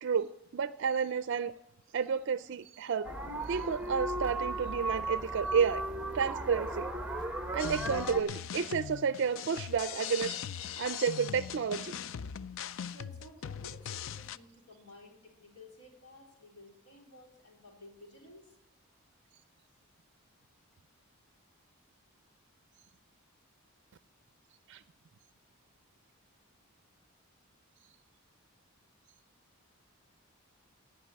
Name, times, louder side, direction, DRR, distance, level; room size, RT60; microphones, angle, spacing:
voice 1, 0.0-1.5 1.9-3.1 3.5-5.8 6.1-6.9 7.5-10.4 10.8-11.9 24.7-24.8, right 6 dB, 55° right, 14 dB, 0.4 m, -31 dB
sound 1, 3.0-8.2, right 1 dB, 5° right, 0.9 m, -36 dB
sound 2, 7.6-14.4, left 8 dB, 60° left, 0.4 m, -40 dB
voice 2, 12.9-18.6, left 1 dB, 85° left, 0 dB, 3.9 m, -54 dB
18.0 x 6.0 x 8.5 m, 0.86 s
head